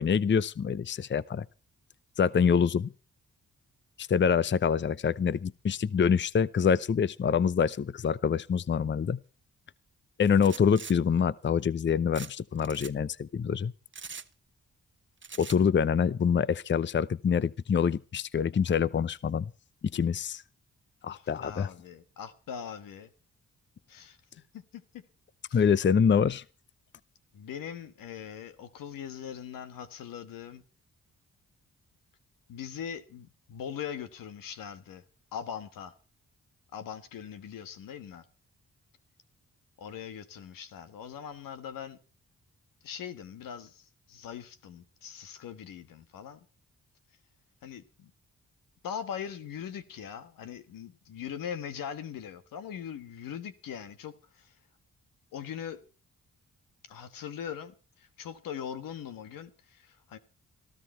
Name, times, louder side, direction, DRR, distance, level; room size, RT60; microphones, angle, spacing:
voice 1, 0.0-1.5 2.2-2.9 4.0-9.2 10.2-13.7 15.4-19.5 19.9-20.4 21.0-21.7 25.5-26.4, left 7 dB, 35° left, 0.6 m, -26 dB
sound 1, 10.4-10.9 12.1-12.3 12.6-12.9 13.9-14.3 15.2-15.6, right 6 dB, 35° right, 1.0 m, -42 dB
voice 2, 21.1-23.1 23.9-24.2 24.5-25.0 25.5-25.6 27.3-30.6 32.5-35.0 35.3-35.9 36.7-38.2 39.8-42.0 42.8-46.4 47.6-48.1 48.8-54.5 55.3-55.8 56.9-60.2, left 8 dB, 85° left, 1.5 m, -41 dB
18.0 x 14.0 x 4.4 m
supercardioid pair, 50°, 33 cm